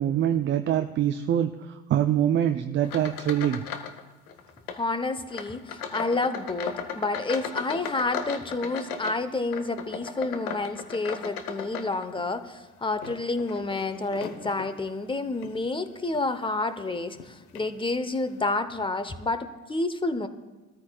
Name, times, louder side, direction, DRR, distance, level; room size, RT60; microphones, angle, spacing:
voice 1, 0.0-1.5 1.9-3.6, right 10 dB, 25° right, 8 dB, 0.5 m, -24 dB
sound 1, 2.8-4.0 4.3-4.8 5.3-12.4 12.9-14.7 15.3-15.6 16.1-16.3 17.1-17.3 17.6-17.7, left 6 dB, 75° left, 1.2 m, -37 dB
voice 2, 4.7-20.3, left 3 dB, 10° left, 11 dB, 0.9 m, -29 dB
22.0 x 13.5 x 2.4 m, 1.2 s
figure-of-eight pair, 75°, 45 cm